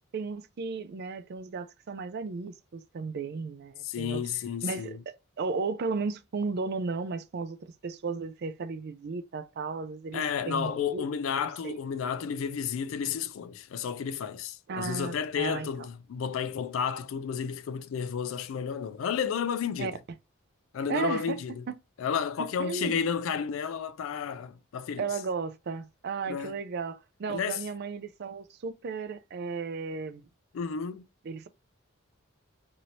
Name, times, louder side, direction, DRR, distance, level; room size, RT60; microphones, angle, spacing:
voice 1, 0.1-4.2 4.6-11.0 11.6-11.8 14.7-15.7 19.8-19.9 20.9-21.4 21.7-21.8 22.6-22.9 25.0-30.2 31.2-31.5, right 4 dB, 50° right, 0.4 m, -34 dB
voice 2, 3.8-5.0 10.1-20.0 20.7-21.6 22.0-25.1 26.3-26.6 27.3-27.6 30.5-31.1, left 7 dB, 65° left, 0.3 m, -32 dB
2.8 x 2.6 x 3.0 m
head